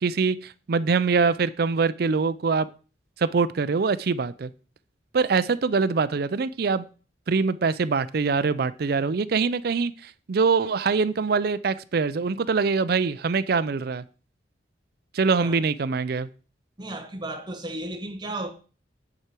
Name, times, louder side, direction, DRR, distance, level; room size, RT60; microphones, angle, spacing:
voice 1, 0.0-2.7 3.2-4.5 5.1-6.8 7.3-14.0 15.1-16.3, right 4 dB, 55° right, 0.4 m, -24 dB
voice 2, 16.8-18.5, right 1 dB, 25° right, 1.1 m, -34 dB
9.6 x 4.8 x 4.5 m
head